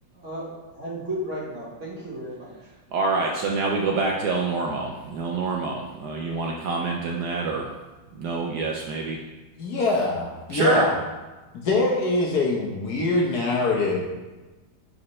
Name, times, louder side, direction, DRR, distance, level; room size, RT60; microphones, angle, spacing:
voice 1, 0.1-2.5, right 1 dB, 40° right, -6 dB, 1.7 m, -34 dB
voice 2, 2.9-7.7 8.2-9.2 10.5-10.9, right 3 dB, 70° right, 0 dB, 1.0 m, -26 dB
voice 3, 9.6-10.9 11.5-14.0, left 2 dB, 60° left, -2 dB, 1.3 m, -23 dB
4.9 x 4.2 x 5.3 m, 1.2 s
omnidirectional pair, 2.1 m